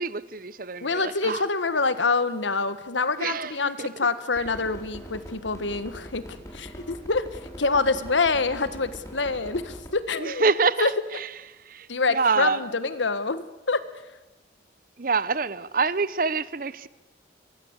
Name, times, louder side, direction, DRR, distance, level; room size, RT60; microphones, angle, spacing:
voice 1, 0.0-1.4 3.2-3.5 3.8-3.9 10.2-11.3 11.7-12.6 15.0-16.9, right 4 dB, 50° right, 0.8 m, -26 dB
voice 2, 0.8-6.2 6.5-7.3 7.6-10.5 10.8-10.9 11.9-13.8, left 3 dB, 85° left, 1.6 m, -26 dB
sound 1, 4.4-9.9, equal, 15° left, 4.3 m, -41 dB
24.0 x 23.5 x 8.2 m
head